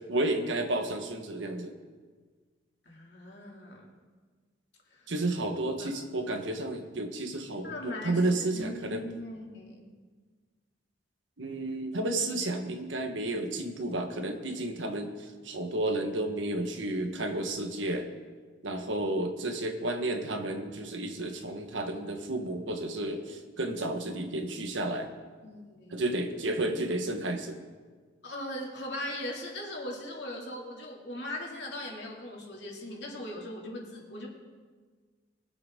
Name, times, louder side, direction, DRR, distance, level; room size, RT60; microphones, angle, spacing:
voice 1, 0.1-1.7 5.1-9.0 11.4-15.2 15.4-18.1 18.6-25.1 25.9-27.6, right 2 dB, 85° right, 4 dB, 1.4 m, -32 dB
voice 2, 2.8-4.0 4.9-5.1 5.8-5.9 7.6-8.2 8.5-9.9 25.4-25.9 28.2-34.3, left 1 dB, 65° left, -2 dB, 2.6 m, -39 dB
22.5 x 7.9 x 3.7 m, 1.5 s
head